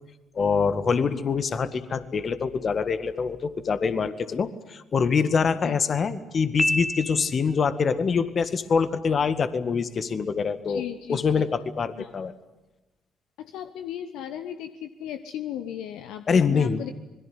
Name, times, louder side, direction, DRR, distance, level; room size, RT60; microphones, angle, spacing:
voice 1, 0.4-12.3 16.3-16.9, left 5 dB, 45° left, 12 dB, 1.9 m, -25 dB
Piano, 6.6-7.7, left 1 dB, 10° left, 1.1 m, -27 dB
voice 2, 10.7-11.5 12.0-12.1 13.4-16.9, left 10 dB, 65° left, 9 dB, 1.1 m, -36 dB
26.0 x 22.0 x 9.6 m, 1.0 s
figure-of-eight pair, 50°, 0 cm